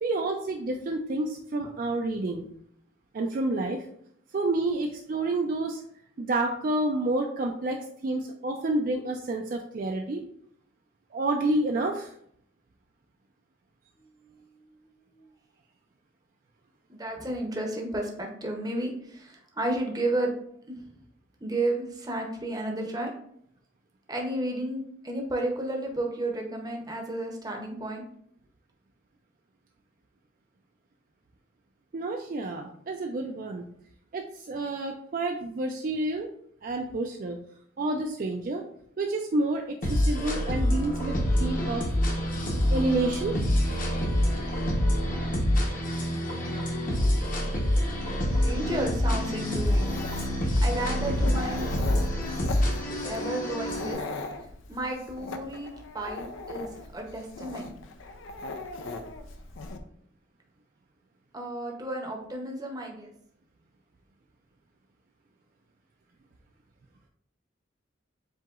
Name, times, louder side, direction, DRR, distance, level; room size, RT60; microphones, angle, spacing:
voice 1, 0.0-2.4 3.1-3.9 4.3-5.8 6.2-10.2 11.1-12.1 31.9-33.6 34.1-36.3 36.6-37.4 37.8-38.6 39.0-41.8 42.7-43.3, right 2 dB, 45° right, 2 dB, 0.3 m, -29 dB
voice 2, 14.0-15.3 16.9-20.3 20.7-20.8 21.4-23.1 24.1-28.0 48.1-49.9 50.3-51.7 53.0-54.0 54.7-56.7 56.9-57.7 61.3-63.1, right 1 dB, 20° right, 1 dB, 0.7 m, -32 dB
sound 1, 39.8-53.9, equal, 45° left, 0.9 m, -26 dB
Dog, 49.6-59.8, left 3 dB, 85° left, 0.5 m, -40 dB
7.5 x 2.8 x 2.4 m, 0.68 s
head